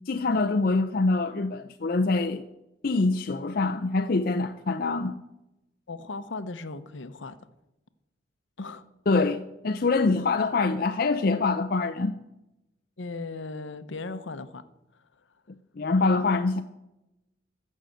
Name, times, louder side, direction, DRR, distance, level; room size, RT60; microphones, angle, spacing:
voice 1, 0.1-2.4 2.8-5.2 9.1-12.1 15.8-16.6, left 3 dB, 50° left, 0.5 m, -25 dB
voice 2, 5.9-7.4 8.6-8.9 13.0-14.6, left 3 dB, 70° left, 0.8 m, -37 dB
15.0 x 6.5 x 7.8 m
head